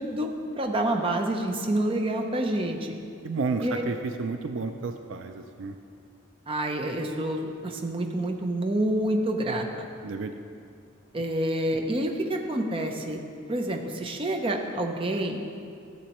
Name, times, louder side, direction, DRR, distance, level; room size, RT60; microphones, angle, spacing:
voice 1, 0.6-2.9 3.6-3.8 6.5-9.8 11.1-13.2 13.5-15.4, right 1 dB, 25° right, 3 dB, 0.6 m, -28 dB
voice 2, 3.2-5.8 10.0-10.4, right 4 dB, 65° right, 7 dB, 0.4 m, -31 dB
13.0 x 7.3 x 3.0 m, 2.4 s
head